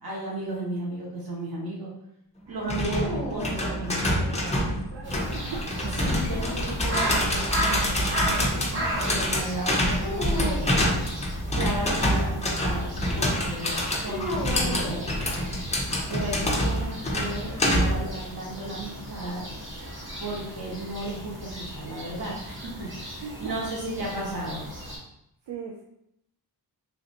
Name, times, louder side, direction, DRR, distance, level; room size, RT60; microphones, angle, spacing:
voice 1, 0.0-1.9 2.5-4.6 6.0-10.8 11.5-15.2 16.1-19.5 20.2-22.7 23.4-24.6, right 1 dB, 60° right, -5 dB, 1.1 m, -34 dB
sound 1, 2.7-18.1, left 1 dB, 15° left, 0.4 m, -27 dB
sound 2, 2.8-4.4 6.0-7.2 10.0-10.8 14.0-15.7, equal, 10° right, 1.2 m, -35 dB
voice 2, 4.9-5.7 16.1-16.6 20.4-20.6 23.2-23.7 24.1-24.3 25.5-25.8, right 5 dB, 80° right, -3 dB, 0.5 m, -40 dB
sound 3, 5.0-25.0, equal, 30° right, 0.8 m, -36 dB
3.2 x 2.6 x 2.8 m, 0.78 s
wide cardioid pair, 165°, 42 cm